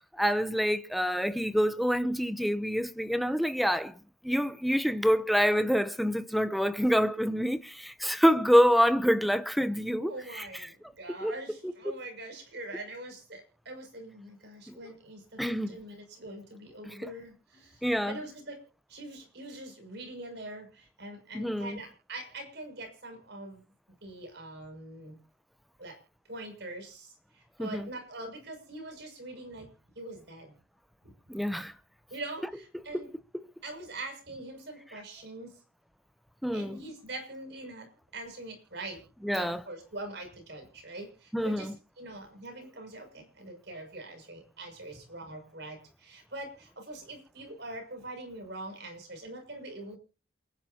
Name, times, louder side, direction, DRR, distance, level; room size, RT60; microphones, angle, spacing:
voice 1, 0.2-3.9 4.2-10.5 11.2-11.3 11.9-12.0 14.7-14.8 15.4-15.8 16.8-17.1 17.8-18.2 21.3-21.8 27.6-27.9 31.3-31.7 36.4-36.8 39.2-39.6 41.3-41.7, equal, ahead, 0.7 m, -26 dB
voice 2, 9.8-18.6 18.9-23.6 24.0-25.2 25.8-26.0 26.3-29.7 29.9-30.5 31.0-31.1 32.1-33.1 33.6-35.5 36.5-39.0 39.3-41.7 42.0-50.0, right 2 dB, 55° right, 6.5 m, -43 dB
28.5 x 11.0 x 2.9 m
head